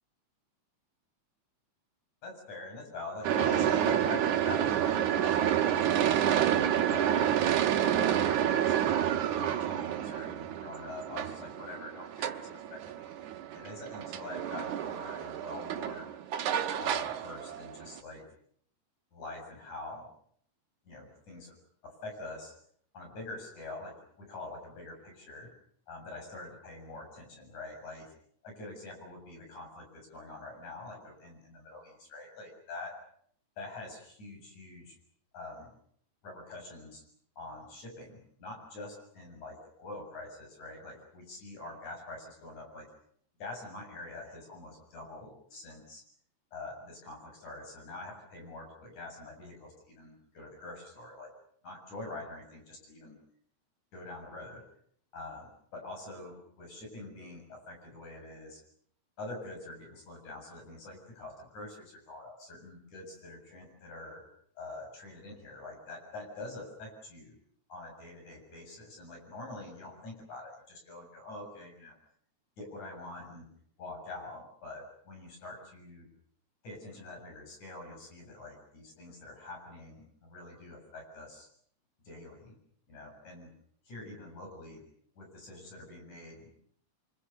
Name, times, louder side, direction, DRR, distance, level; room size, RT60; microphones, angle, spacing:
voice 1, 2.2-5.6 6.2-7.2 7.8-8.9 9.3-13.2 13.5-16.1 16.8-18.3 19.1-20.1 20.9-21.6 21.8-22.5 22.9-25.5 25.9-28.1 28.4-33.0 33.6-35.0 35.3-35.7 36.2-37.0 37.4-42.9 43.4-46.0 46.5-51.3 51.6-53.2 53.9-54.6 55.1-58.6 59.2-64.3 64.6-67.4 67.7-72.0 72.6-73.5 73.8-76.1 76.6-81.5 82.1-82.6 82.9-83.5 83.9-84.8 85.2-86.5, left 2 dB, 80° left, 3 dB, 8.8 m, -45 dB
sound 1, 3.2-18.0, right 10 dB, 85° right, 2.7 m, -29 dB
29.5 x 24.5 x 6.8 m, 0.64 s
omnidirectional pair, 3.3 m